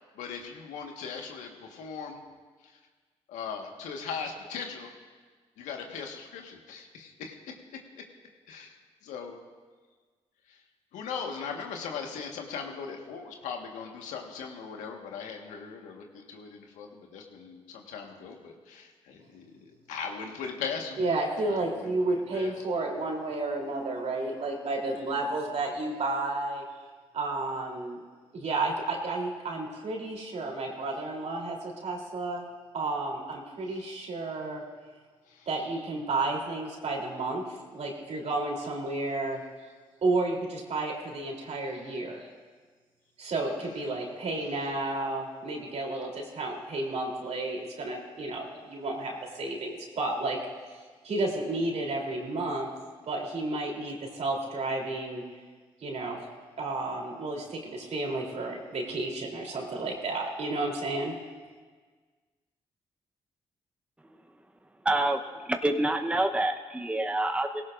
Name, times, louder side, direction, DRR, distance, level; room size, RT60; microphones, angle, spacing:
voice 1, 0.0-2.2 3.3-4.9 5.6-7.4 8.5-8.8 9.0-9.4 10.5-10.6 10.9-21.0 21.5-21.9 22.3-22.7 33.7-33.8 35.3-35.5 44.3-44.5, left 6 dB, 85° left, 2 dB, 1.5 m, -39 dB
voice 2, 21.0-26.6 27.1-28.0 28.3-32.5 32.7-34.6 35.5-37.4 37.7-39.4 40.0-42.2 43.2-50.4 51.0-52.7 53.1-55.2 55.8-56.2 56.6-61.1, right 2 dB, 65° right, 0 dB, 3.3 m, -31 dB
voice 3, 64.8-67.6, right 1 dB, 10° right, 6 dB, 0.9 m, -27 dB
18.0 x 17.0 x 2.6 m, 1.5 s
supercardioid pair, 50°, 13 cm